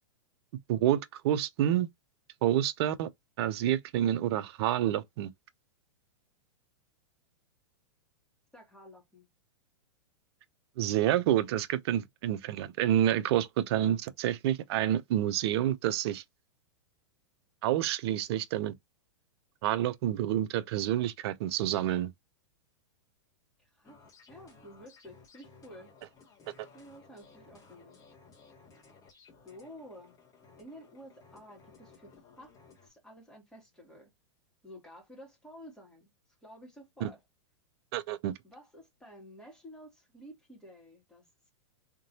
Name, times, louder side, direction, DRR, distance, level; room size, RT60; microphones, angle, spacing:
voice 1, 0.7-1.9 2.4-3.1 3.4-5.3 10.8-16.2 17.6-18.7 19.6-22.1 37.0-37.1 37.9-38.3, right 12 dB, 55° right, 0.7 m, -28 dB
voice 2, 8.5-9.3 23.6-24.0 24.3-25.9 26.7-28.0 29.4-30.2 30.6-32.5 32.8-34.1 34.6-36.1 36.4-37.2 38.4-41.5, equal, 5° left, 2.5 m, -51 dB
sound 1, 23.8-32.9, left 4 dB, 20° left, 2.2 m, -58 dB
3.7 x 3.7 x 2.8 m
hypercardioid pair, 135°, 16 cm